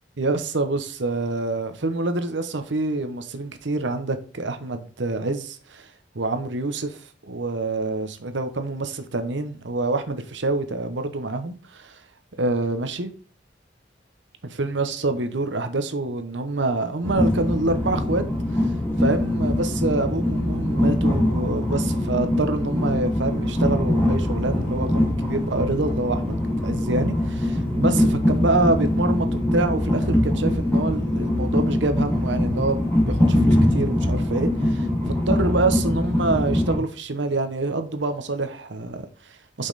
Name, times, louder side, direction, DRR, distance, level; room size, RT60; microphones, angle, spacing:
voice 1, 0.2-12.0 12.4-13.1 14.4-18.2 18.5-18.7 19.0-39.7, right 2 dB, 80° right, 0.9 m, -26 dB
Train, 17.0-36.8, left 1 dB, 15° left, 2.3 m, -23 dB
5.5 x 5.2 x 4.1 m
head